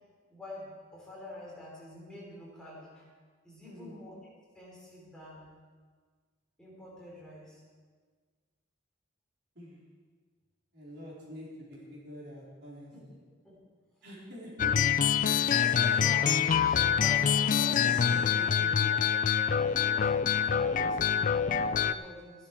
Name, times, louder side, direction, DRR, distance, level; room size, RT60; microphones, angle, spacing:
voice 1, 0.3-3.1 3.4-5.5 6.6-7.6 12.9-13.1 13.4-13.5 15.5-16.4 16.9-18.5 18.8-19.2 19.9-22.5, left 1 dB, 5° left, -6 dB, 3.5 m, -46 dB
voice 2, 3.6-4.0 9.6-9.8 10.7-12.9 14.0-14.8 17.3-17.4 17.8-18.9 20.6-20.9, equal, 60° right, -6 dB, 4.1 m, -46 dB
sound 1, 14.6-21.9, left 8 dB, 45° left, 0.3 m, -26 dB
15.0 x 11.5 x 4.6 m, 1.5 s
head